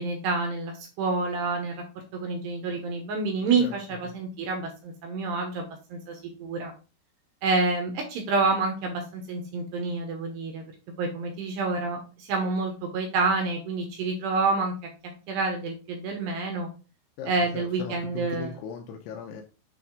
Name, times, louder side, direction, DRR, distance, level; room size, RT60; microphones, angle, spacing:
voice 1, 0.0-1.9 2.1-6.7 7.4-10.6 11.0-14.8 15.3-16.7 17.3-18.6, right 3 dB, 75° right, 3 dB, 2.6 m, -28 dB
voice 2, 17.2-19.4, left 6 dB, 80° left, 2 dB, 2.8 m, -38 dB
8.2 x 3.5 x 3.7 m, 0.34 s
omnidirectional pair, 5.8 m